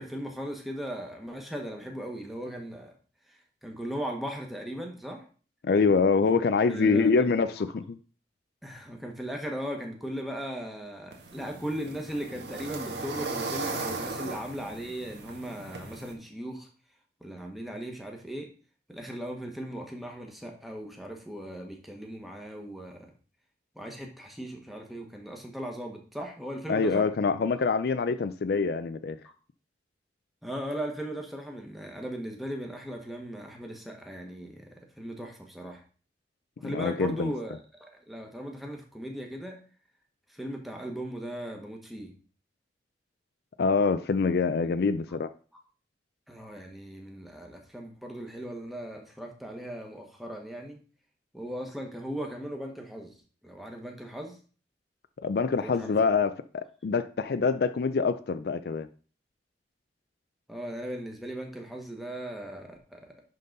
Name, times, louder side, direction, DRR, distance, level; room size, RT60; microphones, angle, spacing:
voice 1, 0.0-2.9 3.3-5.2 6.2-6.3 6.7-7.3 7.6-7.7 8.6-16.7 17.2-18.5 18.9-23.1 23.7-27.1 30.4-35.8 36.6-39.6 40.3-42.1 46.3-50.8 51.3-53.1 53.4-54.4 55.6-55.9 60.5-63.1, equal, ahead, 1.3 m, -38 dB
voice 2, 5.6-8.0 26.7-29.2 36.6-37.3 43.6-45.3 55.2-58.9, left 4 dB, 60° left, 0.4 m, -25 dB
sound 1, 11.1-16.1, right 3 dB, 75° right, 1.4 m, -37 dB
10.5 x 3.9 x 3.9 m
head